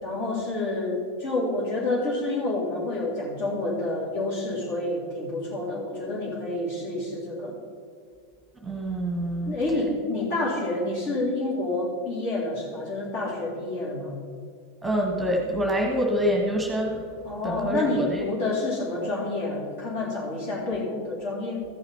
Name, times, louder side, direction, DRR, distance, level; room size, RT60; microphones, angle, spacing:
voice 1, 0.0-7.6 9.5-14.2 17.2-21.6, left 2 dB, 50° left, -3 dB, 3.1 m, -28 dB
voice 2, 8.6-9.6 14.8-17.0 17.4-18.0, equal, 10° right, 1 dB, 1.4 m, -26 dB
13.5 x 5.7 x 5.6 m, 2.1 s
figure-of-eight pair, 90°, 0 cm